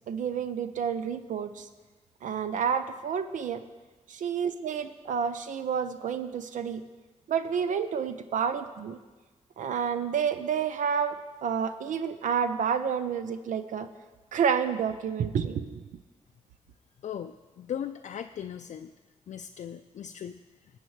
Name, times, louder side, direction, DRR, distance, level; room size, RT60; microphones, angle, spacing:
voice 1, 0.1-1.7 2.2-3.7 4.1-6.8 7.3-9.0 9.6-11.2 11.4-13.9 14.3-15.8, right 7 dB, 85° right, 10 dB, 0.5 m, -29 dB
voice 2, 17.0-18.9 19.3-20.4, left 9 dB, 70° left, 6 dB, 0.4 m, -38 dB
18.5 x 8.7 x 3.1 m, 1.3 s
cardioid pair, 85°, 13 cm